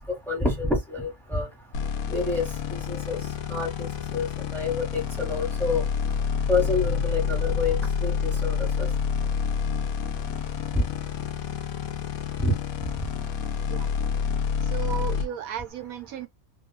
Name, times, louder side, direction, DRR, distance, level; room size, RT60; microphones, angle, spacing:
voice 1, 0.3-1.5 2.1-2.4 2.7-3.2 3.5-3.7 4.1-4.3 4.5-5.8 6.5-8.1 8.4-8.9 12.4-12.5, left 3 dB, ahead, 1.0 m, -27 dB
sound 1, 1.7-15.3, left 7 dB, 80° left, 1.0 m, -28 dB
voice 2, 14.6-16.3, right 8 dB, 80° right, 1.1 m, -34 dB
2.9 x 2.4 x 2.2 m
omnidirectional pair, 1.5 m